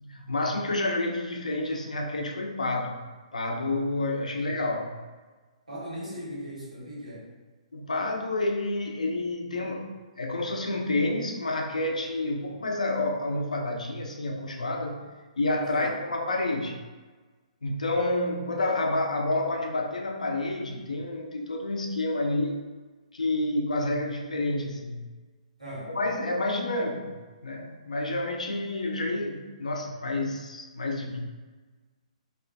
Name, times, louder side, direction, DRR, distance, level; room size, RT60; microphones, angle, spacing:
voice 1, 0.0-3.0 3.3-5.0 7.7-9.9 10.2-15.0 15.4-16.8 17.6-22.6 23.1-25.0 25.9-27.1 27.4-31.2, left 2 dB, 75° left, 1 dB, 0.3 m, -29 dB
voice 2, 5.7-7.3 15.7-15.9 25.6-25.9, equal, 90° right, -6 dB, 1.1 m, -38 dB
2.3 x 2.2 x 2.5 m, 1.3 s
figure-of-eight pair, 125°, 4 cm